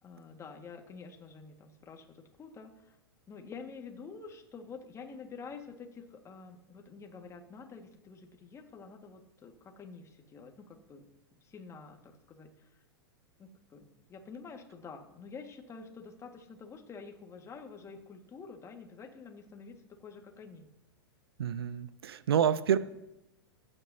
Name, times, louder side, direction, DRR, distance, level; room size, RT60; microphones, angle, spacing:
voice 1, 0.0-3.0 3.3-11.0 11.3-12.7 13.4-20.7, left 5 dB, 20° left, 4 dB, 1.8 m, -48 dB
voice 2, 21.4-22.8, right 8 dB, 75° right, 16 dB, 0.6 m, -28 dB
25.0 x 8.9 x 2.8 m, 0.91 s
hypercardioid pair, 105°, 13 cm